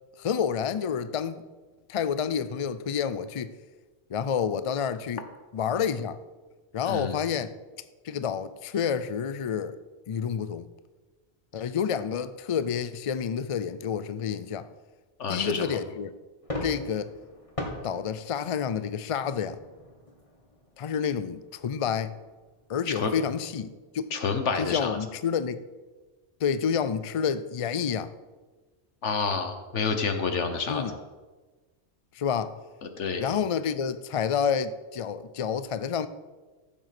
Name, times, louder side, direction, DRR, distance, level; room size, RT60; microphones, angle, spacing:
voice 1, 0.2-1.4 1.9-3.5 4.1-5.2 5.5-6.2 6.7-7.5 8.0-9.7 10.1-10.7 11.5-14.7 15.3-16.1 16.6-17.1 17.8-19.6 20.8-22.1 22.7-24.1 24.6-25.6 26.4-28.1 30.7-31.0 32.1-32.6 33.2-36.1, left 7 dB, 60° left, 0.3 m, -29 dB
voice 2, 15.2-15.7 22.9-23.1 24.1-25.0 29.0-30.8 32.8-33.2, left 5 dB, 90° left, 1.5 m, -28 dB
sound 1, 16.4-23.2, left 1 dB, 30° left, 1.8 m, -41 dB
14.0 x 7.6 x 5.9 m
omnidirectional pair, 1.2 m